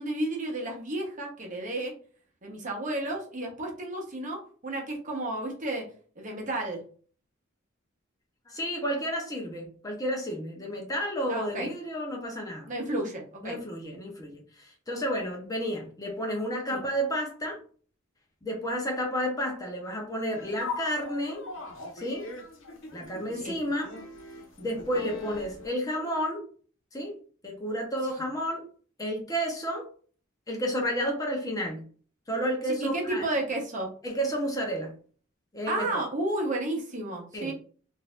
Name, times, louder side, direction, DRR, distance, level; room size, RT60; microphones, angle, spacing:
voice 1, 0.0-1.9 2.4-5.8 6.2-6.8 11.3-11.7 12.7-13.6 16.7-16.8 23.4-23.6 32.7-33.9 35.7-37.5, right 1 dB, 40° right, 0 dB, 0.9 m, -32 dB
voice 2, 8.5-12.7 13.4-17.6 18.4-21.4 22.0-22.3 22.9-23.9 24.6-26.4 26.9-27.1 27.4-28.6 29.0-29.9 30.5-31.9 32.3-33.3 34.0-34.9 35.5-36.0 37.3-37.5, equal, 20° left, 0 dB, 0.8 m, -31 dB
sound 1, 20.3-25.7, left 4 dB, 75° left, 1.0 m, -40 dB
3.8 x 2.6 x 2.4 m, 0.43 s
head